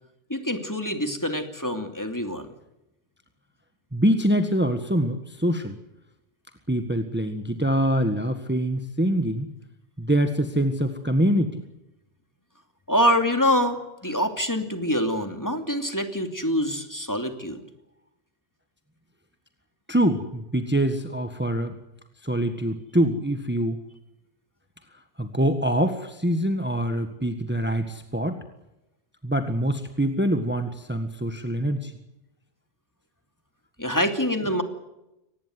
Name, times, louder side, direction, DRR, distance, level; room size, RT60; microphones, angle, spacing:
voice 1, 0.3-2.5 12.9-17.6 33.8-34.6, equal, 15° left, 6 dB, 2.7 m, -25 dB
voice 2, 3.9-5.8 6.7-9.5 10.0-11.6 19.9-21.8 22.2-23.8 25.2-28.4 29.2-31.9 34.4-34.6, right 1 dB, 10° right, 7 dB, 1.6 m, -24 dB
24.5 x 19.5 x 7.8 m, 0.91 s
omnidirectional pair, 1.1 m